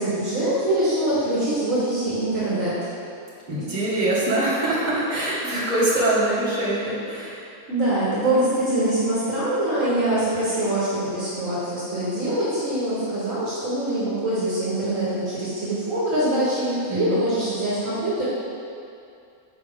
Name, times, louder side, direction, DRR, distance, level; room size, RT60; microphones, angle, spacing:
voice 1, 0.0-2.8 7.7-18.3, right 1 dB, 65° right, -9 dB, 1.5 m, -24 dB
voice 2, 3.5-7.4 16.9-17.2, right 1 dB, 30° right, -11 dB, 1.7 m, -23 dB
6.0 x 4.7 x 3.5 m, 2.5 s
omnidirectional pair, 1.5 m